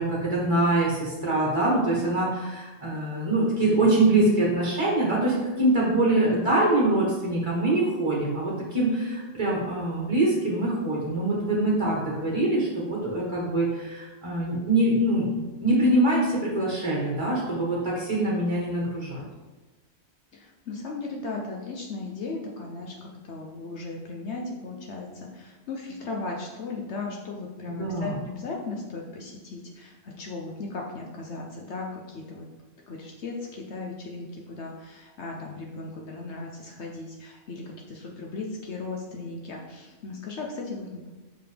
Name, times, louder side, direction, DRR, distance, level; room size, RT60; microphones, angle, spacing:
voice 1, 0.0-19.2 27.7-28.1, right 2 dB, 25° right, -5 dB, 1.3 m, -24 dB
voice 2, 20.3-32.5 32.9-41.2, left 3 dB, 70° left, -1 dB, 1.0 m, -37 dB
5.8 x 5.2 x 3.4 m, 1.2 s
omnidirectional pair, 1.2 m